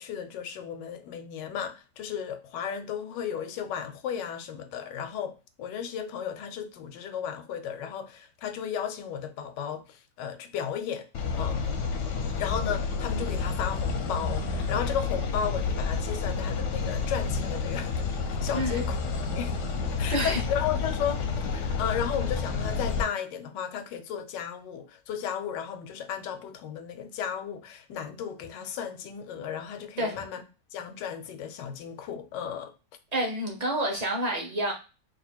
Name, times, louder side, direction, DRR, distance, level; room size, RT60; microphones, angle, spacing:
voice 1, 0.0-11.1 11.3-11.6 12.4-17.9 18.4-19.0 19.2-19.5 20.0-21.2 21.5-30.4 30.7-32.7, left 8 dB, 90° left, 1.3 m, -34 dB
sound 1, 11.1-23.0, left 4 dB, 65° left, 0.8 m, -30 dB
voice 2, 18.5-18.8 20.1-20.4 30.0-30.2 33.1-34.7, right 1 dB, 35° right, 0.7 m, -28 dB
2.8 x 2.7 x 4.3 m
omnidirectional pair, 1.8 m